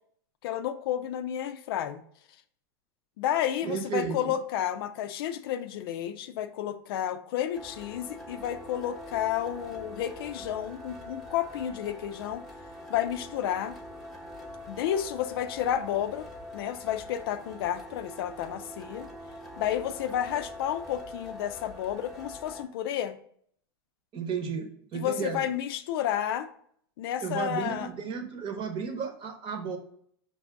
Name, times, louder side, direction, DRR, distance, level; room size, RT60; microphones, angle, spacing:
voice 1, 0.4-2.0 3.2-12.4 12.9-13.7 14.7-16.3 16.5-19.1 19.6-23.2 24.9-26.5 27.0-27.9, left 10 dB, 70° left, 9 dB, 0.5 m, -31 dB
voice 2, 3.6-4.4 24.1-25.5 27.2-29.8, right 6 dB, 40° right, 5 dB, 1.0 m, -33 dB
sound 1, 7.5-22.6, left 1 dB, ahead, 0.9 m, -44 dB
6.0 x 2.6 x 3.4 m, 0.63 s
hypercardioid pair, 115°, 13 cm